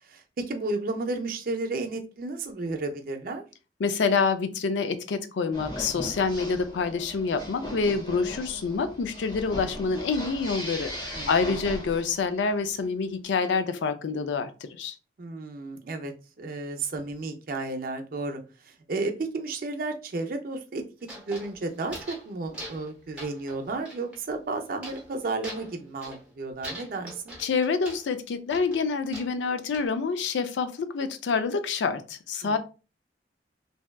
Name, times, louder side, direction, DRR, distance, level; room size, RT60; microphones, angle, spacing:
voice 1, 0.0-3.4 11.1-11.6 15.2-16.1 16.4-20.8 21.3-27.4 32.4-32.6, right 3 dB, 50° right, 0.4 m, -33 dB
voice 2, 3.8-14.9 27.4-32.6, left 5 dB, 80° left, 0.4 m, -27 dB
sound 1, 5.5-12.4, equal, 25° left, 0.8 m, -38 dB
sound 2, 21.0-22.3 22.5-22.9 23.2-24.2 24.8-25.1 25.4-26.3 26.6-28.0 28.5-29.9, right 1 dB, 5° right, 0.7 m, -42 dB
2.7 x 2.2 x 2.2 m
head